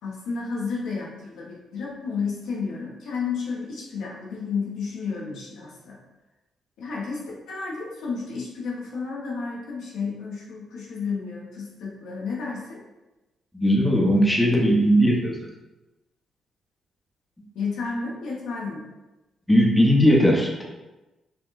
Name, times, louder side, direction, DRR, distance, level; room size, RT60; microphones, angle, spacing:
voice 1, 0.0-6.0 6.8-12.8 17.5-18.8, left 5 dB, 75° left, -5 dB, 1.0 m, -32 dB
voice 2, 13.5-15.3 19.5-20.7, equal, 10° left, -1 dB, 0.9 m, -18 dB
4.9 x 2.7 x 2.5 m, 1.0 s
hypercardioid pair, 45°, 0 cm